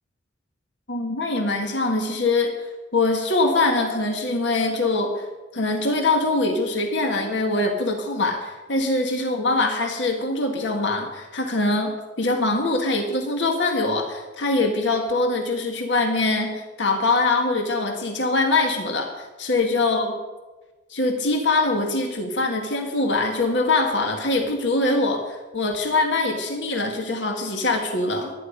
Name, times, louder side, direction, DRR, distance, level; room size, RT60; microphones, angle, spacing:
voice 1, 0.9-5.3 5.5-20.1 20.9-28.3, left 2 dB, 70° left, 3 dB, 1.8 m, -23 dB
22.0 x 10.0 x 5.2 m, 1.3 s
head